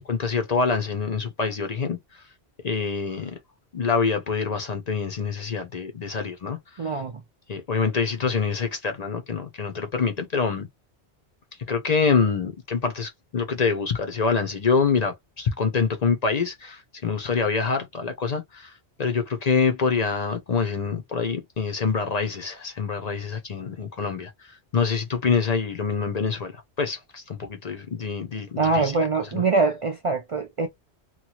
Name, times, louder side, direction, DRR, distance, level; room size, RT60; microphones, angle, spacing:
voice 1, 0.1-2.0 2.6-3.4 3.7-7.0 7.5-10.7 11.7-18.7 19.0-28.9 29.2-29.4, left 5 dB, 45° left, 0.6 m, -26 dB
voice 2, 6.8-7.2 28.6-30.7, right 3 dB, 50° right, 0.4 m, -23 dB
2.9 x 2.3 x 2.8 m
omnidirectional pair, 1.1 m